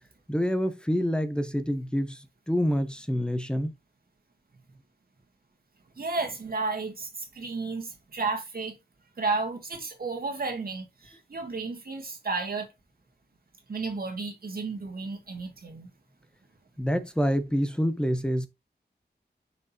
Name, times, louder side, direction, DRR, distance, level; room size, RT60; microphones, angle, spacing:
voice 1, 0.3-3.7 16.8-18.5, equal, 5° left, 1.1 m, -27 dB
voice 2, 6.0-8.8 9.2-12.7 13.7-15.9, right 3 dB, 60° right, 2.4 m, -32 dB
6.4 x 5.3 x 2.9 m
wide cardioid pair, 80°, 18 cm